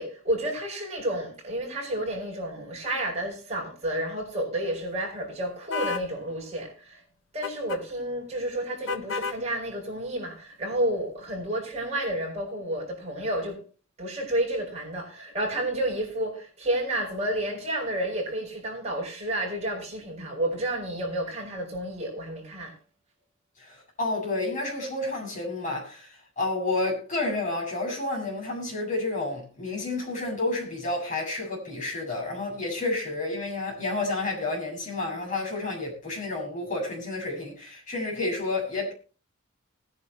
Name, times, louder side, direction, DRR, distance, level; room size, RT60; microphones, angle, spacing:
voice 1, 0.0-7.0 7.3-13.6 14.0-22.7, right 1 dB, 30° right, 6.7 m, -30 dB
sound 1, 5.7-6.1 7.4-7.8 8.9-9.4, left 4 dB, 60° left, 0.9 m, -31 dB
voice 2, 23.6-38.9, left 2 dB, 35° left, 7.4 m, -30 dB
20.5 x 10.5 x 3.0 m
head